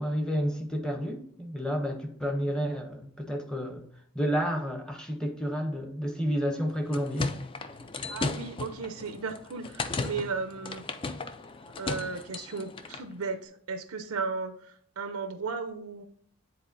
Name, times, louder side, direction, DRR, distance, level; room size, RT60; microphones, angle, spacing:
voice 1, 0.0-3.8 4.1-7.3, equal, 5° left, 4 dB, 0.7 m, -30 dB
sound 1, 6.7-13.1, left 3 dB, 25° left, 0.3 m, -36 dB
voice 2, 8.1-10.8 11.8-16.0, right 4 dB, 85° right, 8 dB, 0.6 m, -35 dB
9.5 x 4.1 x 2.6 m, 0.66 s
head